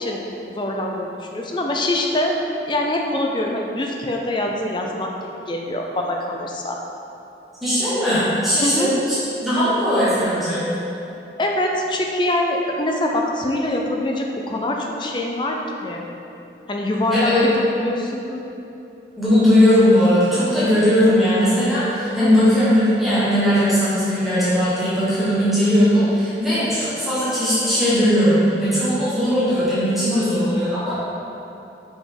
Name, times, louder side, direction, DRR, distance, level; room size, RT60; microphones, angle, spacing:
voice 1, 0.0-2.4 2.7-5.1 5.5-6.8 8.6-8.9 11.4-16.1 16.7-17.3 17.8-18.4 22.2-22.5 26.6-26.7 30.1-30.3, left 1 dB, 25° left, 1 dB, 0.5 m, -24 dB
voice 2, 7.6-9.1 9.4-10.7 17.1-17.8 19.2-31.0, equal, ahead, -13 dB, 1.3 m, -18 dB
5.1 x 5.0 x 3.7 m, 2.9 s
head